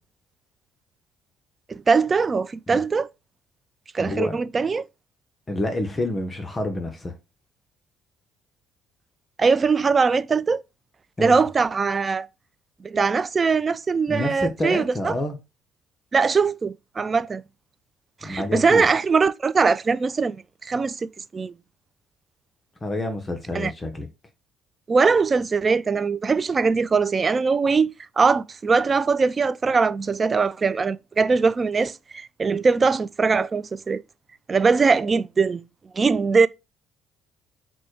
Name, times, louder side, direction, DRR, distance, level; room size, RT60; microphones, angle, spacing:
voice 1, 1.7-3.1 3.9-4.8 9.4-10.6 11.2-12.3 12.8-15.1 16.1-17.4 18.2-21.5 23.5-23.7 24.9-34.0 34.5-35.6 35.9-36.5, right 4 dB, 35° right, 0.3 m, -21 dB
voice 2, 4.0-4.4 5.5-7.1 11.2-11.4 14.1-15.4 18.2-18.9 22.8-24.1, left 1 dB, 25° left, 0.9 m, -28 dB
4.1 x 2.2 x 4.6 m
supercardioid pair, 65°, 0 cm